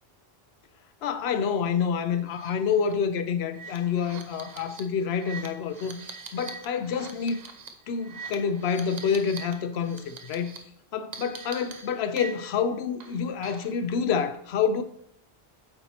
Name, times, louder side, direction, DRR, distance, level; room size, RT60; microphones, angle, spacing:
voice 1, 1.0-6.0 6.3-7.4 7.9-10.5 10.9-14.8, left 6 dB, 80° left, 0.8 m, -27 dB
sound 1, 2.3-2.5 2.8-2.9 3.5-9.5 9.8-10.6 11.1-12.6 13.0-13.8, right 5 dB, 45° right, 0.7 m, -43 dB
8.9 x 3.0 x 4.1 m
omnidirectional pair, 1.1 m